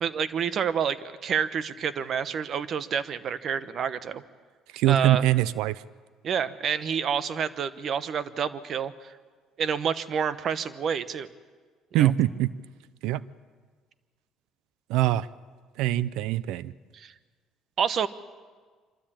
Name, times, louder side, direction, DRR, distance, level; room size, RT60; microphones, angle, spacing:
voice 1, 0.0-4.2 4.9-5.2 6.2-9.1 9.6-11.3 11.9-12.1 16.9-17.1 17.8-18.1, right 7 dB, 55° right, 14 dB, 1.0 m, -28 dB
voice 2, 4.7-5.8 11.9-12.5 13.0-13.2 14.9-15.3 15.8-16.7, right 13 dB, 85° right, 19 dB, 0.5 m, -23 dB
25.5 x 13.0 x 8.8 m, 1.5 s
supercardioid pair, 90°, 0 cm